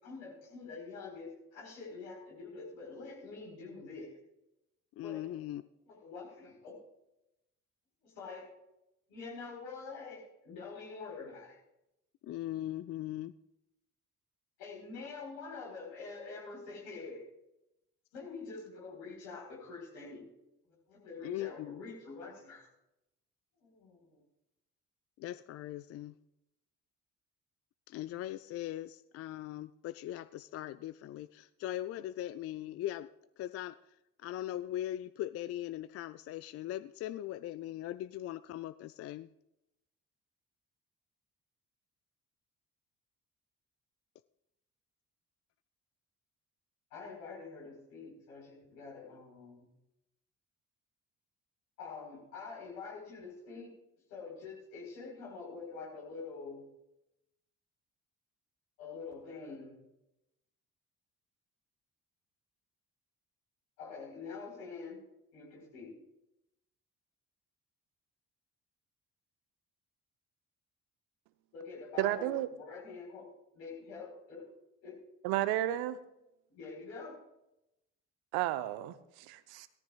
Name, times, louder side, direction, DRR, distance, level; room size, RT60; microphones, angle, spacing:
voice 1, 0.0-4.2 5.0-5.2 5.9-6.8 8.0-8.5 9.1-11.6 14.6-17.2 18.1-20.3 20.9-22.7 23.6-24.2 46.9-49.7 51.8-53.7 54.1-56.7 58.8-59.8 63.8-65.0 65.3-66.0 71.5-73.3 73.5-74.5 74.8-75.0 76.5-77.2, left 4 dB, 70° left, -2 dB, 4.3 m, -46 dB
voice 2, 5.0-5.6 12.2-13.3 21.2-21.8 25.2-26.1 27.9-33.1 33.4-33.8 34.2-39.3, left 13 dB, 35° left, 15 dB, 0.4 m, -40 dB
voice 3, 72.0-72.5 75.2-76.0 78.3-79.7, right 14 dB, 60° right, 13 dB, 0.8 m, -32 dB
17.5 x 13.0 x 2.4 m, 0.88 s
figure-of-eight pair, 45°, 42 cm